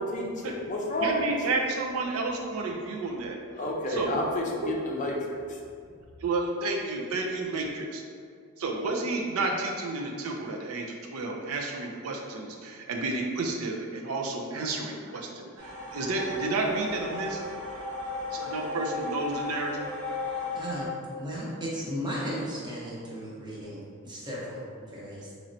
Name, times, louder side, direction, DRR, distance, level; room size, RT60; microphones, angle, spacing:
voice 1, 0.0-1.3 3.6-5.6, left 1 dB, 35° left, -1 dB, 0.5 m, -30 dB
voice 2, 1.0-3.4 3.9-4.2 4.6-4.7 6.2-8.0 8.6-17.4 18.3-19.8, right 3 dB, 75° right, 1 dB, 0.5 m, -31 dB
sound 1, 15.6-20.9, left 3 dB, 55° right, 0.8 m, -35 dB
voice 3, 20.5-25.3, equal, 20° right, -6 dB, 0.8 m, -36 dB
4.1 x 3.0 x 2.6 m, 2.2 s
head